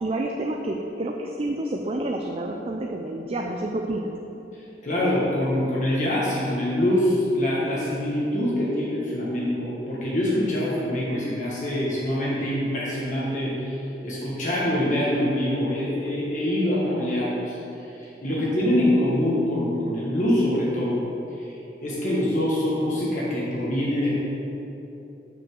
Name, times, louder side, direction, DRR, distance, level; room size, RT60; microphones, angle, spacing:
voice 1, 0.0-4.1, right 1 dB, 35° right, 2 dB, 0.4 m, -29 dB
voice 2, 4.5-17.6 17.8-21.0 21.3-21.5 21.8-24.1, left 1 dB, 45° left, -6 dB, 1.3 m, -25 dB
6.1 x 5.5 x 6.2 m, 3.0 s
head